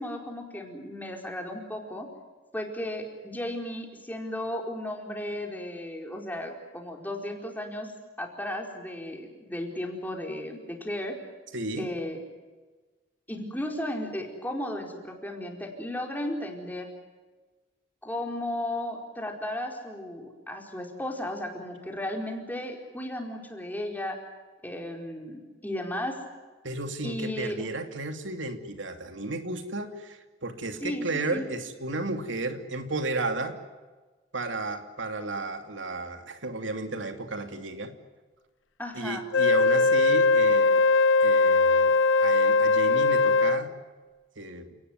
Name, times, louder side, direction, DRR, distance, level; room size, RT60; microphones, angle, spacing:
voice 1, 0.0-2.1 2.5-7.9 8.2-11.2 11.8-12.2 13.3-16.9 18.0-24.2 24.6-26.2 27.0-27.6 30.8-31.4 38.8-39.2, left 1 dB, 10° left, 2 dB, 4.5 m, -35 dB
voice 2, 11.5-11.9 26.6-33.6 34.3-37.9 38.9-40.8 41.2-41.9 42.2-43.7 44.4-44.7, right 2 dB, 85° right, 7 dB, 2.8 m, -33 dB
Wind instrument woodwind instrument, 39.3-43.7, left 3 dB, 90° left, 1.1 m, -20 dB
29.5 x 19.0 x 9.7 m, 1.3 s
head